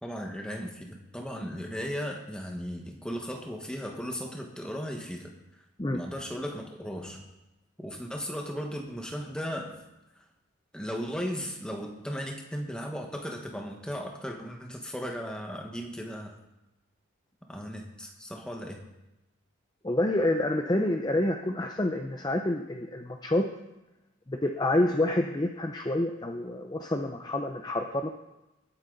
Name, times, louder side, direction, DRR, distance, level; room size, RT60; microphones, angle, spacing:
voice 1, 0.0-5.3 5.9-7.3 7.8-9.8 10.7-16.4 17.5-18.9, equal, 5° left, 1 dB, 1.5 m, -36 dB
voice 2, 19.8-23.5 24.3-28.1, left 1 dB, 20° left, 4 dB, 0.6 m, -28 dB
20.0 x 8.4 x 4.0 m, 0.96 s
head